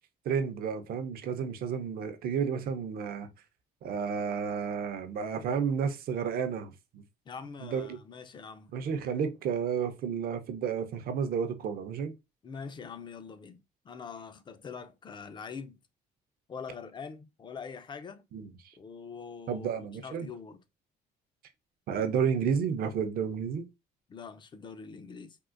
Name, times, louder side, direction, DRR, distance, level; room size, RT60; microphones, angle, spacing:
voice 1, 0.2-3.3 3.8-7.0 7.6-8.0 8.7-12.1 18.3-18.5 19.5-20.3 21.9-23.6, right 7 dB, 60° right, 0.6 m, -31 dB
voice 2, 7.3-8.7 12.4-15.8 16.5-18.2 18.8-20.6 24.1-25.4, left 5 dB, 25° left, 0.4 m, -44 dB
3.6 x 2.4 x 2.4 m
cardioid pair, 110°, 17 cm